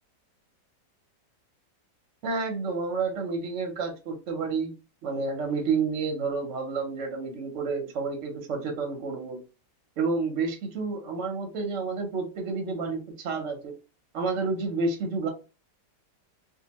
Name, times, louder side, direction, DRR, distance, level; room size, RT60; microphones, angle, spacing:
voice 1, 2.2-4.7 5.0-9.4 10.0-13.7 14.1-15.3, right 4 dB, 60° right, 3 dB, 0.8 m, -30 dB
2.8 x 2.2 x 2.8 m, 0.31 s
omnidirectional pair, 1.9 m